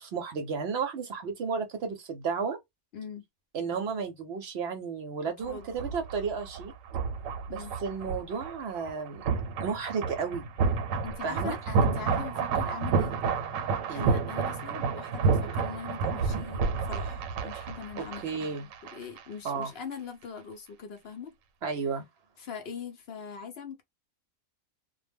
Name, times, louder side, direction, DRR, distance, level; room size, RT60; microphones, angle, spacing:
voice 1, 0.0-2.6 3.5-6.7 7.5-9.2 9.6-10.5 11.2-11.6 13.9-14.1 18.0-18.7 19.4-19.7 21.6-22.0, right 5 dB, 60° right, 0.8 m, -33 dB
voice 2, 2.9-3.2 5.5-5.7 7.5-7.7 11.0-13.1 13.9-16.6 16.9-18.6 18.9-21.3 22.4-23.8, left 6 dB, 60° left, 0.7 m, -41 dB
sound 1, 5.4-19.2 19.5-19.6, right 5 dB, 90° right, 1.0 m, -30 dB
2.1 x 2.1 x 3.3 m
omnidirectional pair, 1.3 m